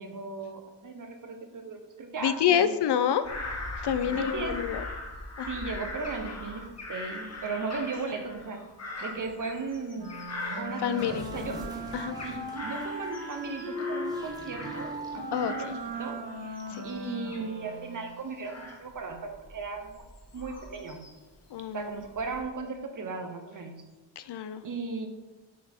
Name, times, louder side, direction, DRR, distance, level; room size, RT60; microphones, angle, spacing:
voice 1, 0.0-2.7 4.1-4.6 5.5-8.6 9.0-10.2 10.6-11.6 12.2-15.7 16.0-16.2 16.8-20.0 20.3-21.0 21.7-23.8 24.6-25.1, right 4 dB, 45° right, 5 dB, 0.8 m, -36 dB
voice 2, 2.2-3.3 3.8-4.8 5.4-5.5 10.8-11.2 11.9-12.2 15.3-15.5 16.7-16.8 21.5-21.9 24.2-24.6, left 9 dB, 65° left, 12 dB, 0.5 m, -27 dB
Bird vocalization bird call bird song / Crow, 3.2-11.6 11.9-15.0 15.3-21.3 21.8-22.4, left 2 dB, 35° left, 1.0 m, -41 dB
Wind instrument woodwind instrument, 9.9-18.2, equal, 75° right, 2.0 m, -38 dB
sound 1, 10.1-16.0, right 1 dB, 10° right, 0.9 m, -47 dB
6.1 x 4.1 x 4.4 m, 1.2 s
wide cardioid pair, 130°, 45 cm